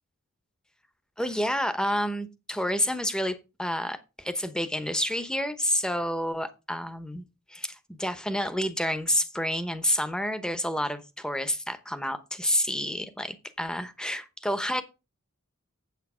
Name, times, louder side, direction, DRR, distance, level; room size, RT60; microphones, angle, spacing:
voice 1, 1.2-7.2 7.5-14.8, equal, 5° left, 0.9 m, -29 dB
8.3 x 7.9 x 5.0 m
head